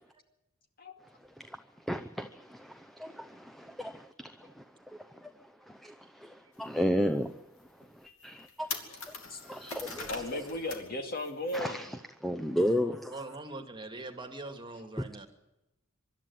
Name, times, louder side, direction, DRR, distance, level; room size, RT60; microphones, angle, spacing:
voice 1, 1.9-5.3 5.7-7.4 7.9-8.7 9.1-9.2 9.4-10.4 11.5-13.2, equal, ahead, 0.7 m, -34 dB
sound 1, 6.6-6.7 7.2-7.3 7.8-7.9 8.2-10.9 11.2-11.6, left 5 dB, 70° left, 2.8 m, -42 dB
voice 2, 10.1-11.8, left 1 dB, 45° left, 2.3 m, -35 dB
voice 3, 12.8-15.3, right 2 dB, 25° right, 2.0 m, -43 dB
24.5 x 12.5 x 9.4 m
head